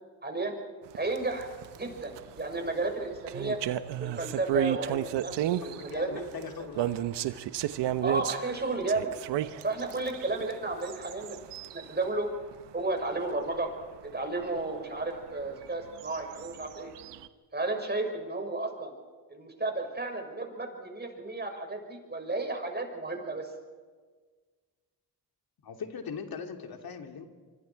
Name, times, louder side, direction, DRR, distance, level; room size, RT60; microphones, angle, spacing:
voice 1, 0.2-0.6 0.9-1.5 1.7-3.6 4.0-6.3 8.0-9.1 9.6-11.4 11.7-12.3 12.7-13.7 14.0-16.9 17.5-18.9 19.3-23.5, right 2 dB, 25° right, 4 dB, 5.6 m, -33 dB
sound 1, 0.9-12.1 12.4-12.6 13.0-13.2 13.5-13.6 14.0-14.1 14.4-14.5 15.6-17.3, right 13 dB, 80° right, 1.1 m, -33 dB
voice 2, 5.6-7.0 25.6-27.3, left 6 dB, 55° left, 4 dB, 2.8 m, -40 dB
25.5 x 24.5 x 4.7 m, 1.5 s
supercardioid pair, 60°, 42 cm